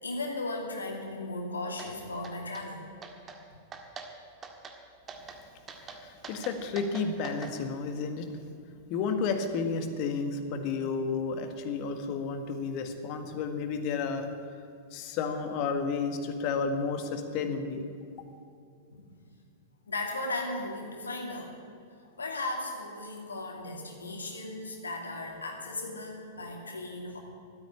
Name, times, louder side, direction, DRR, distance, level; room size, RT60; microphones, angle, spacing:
voice 1, 0.0-2.8 18.9-19.0 19.9-21.5 22.0-27.2, left 2 dB, 85° left, 2 dB, 2.5 m, -36 dB
sound 1, 1.8-1.9 2.2-2.7 3.0-3.4 3.7-4.1 4.4-4.8 5.1-5.4 5.7-7.5, right 5 dB, 25° right, 1.9 m, -43 dB
voice 2, 5.8-8.3 8.9-14.3 14.9-17.9, left 5 dB, 45° left, 7 dB, 1.8 m, -32 dB
13.0 x 9.2 x 9.9 m, 2.5 s
figure-of-eight pair, 100°, 0 cm